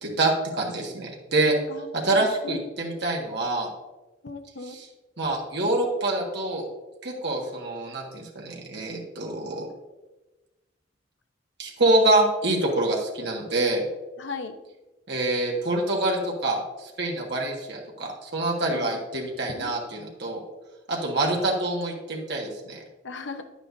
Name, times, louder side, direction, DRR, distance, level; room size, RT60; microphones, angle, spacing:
voice 1, 0.0-1.5 1.9-3.7 4.6-4.9 5.2-6.6 7.0-9.7 11.6-13.8 15.1-20.4 20.9-22.8, right 2 dB, 60° right, -1 dB, 1.7 m, -26 dB
voice 2, 1.7-2.6 4.2-4.8 14.2-14.6 18.7-19.7 23.0-23.5, left 4 dB, 70° left, 7 dB, 0.7 m, -38 dB
9.9 x 9.0 x 2.7 m, 1.1 s
head